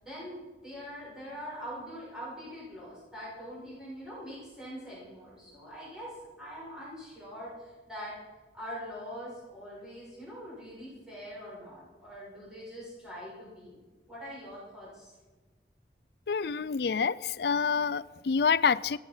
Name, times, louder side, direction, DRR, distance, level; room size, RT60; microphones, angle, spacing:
voice 1, 0.0-8.1 8.5-13.8 14.1-15.1, equal, 5° right, 7.0 m, -43 dB
voice 2, 16.3-19.0, left 6 dB, 65° left, 0.4 m, -27 dB
17.0 x 15.0 x 5.6 m
head